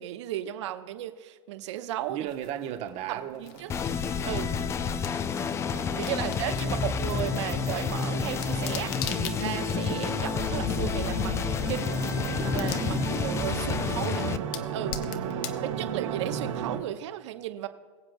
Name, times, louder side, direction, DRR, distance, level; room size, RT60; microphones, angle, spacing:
voice 1, 0.0-2.3 3.1-3.7 4.2-4.5 5.7-14.4 14.7-15.1 15.6-17.7, right 12 dB, 65° right, 9 dB, 1.0 m, -35 dB
voice 2, 2.1-3.6 6.4-6.8 15.1-15.7, right 11 dB, 40° right, 8 dB, 1.0 m, -37 dB
sound 1, 2.3-16.8, left 9 dB, 45° left, 0.9 m, -44 dB
sound 2, 2.7-16.8, right 8 dB, 85° right, 1.9 m, -36 dB
sound 3, 3.7-14.4, left 6 dB, 15° left, 0.4 m, -29 dB
22.5 x 7.5 x 2.3 m, 1.5 s
hypercardioid pair, 130°, 16 cm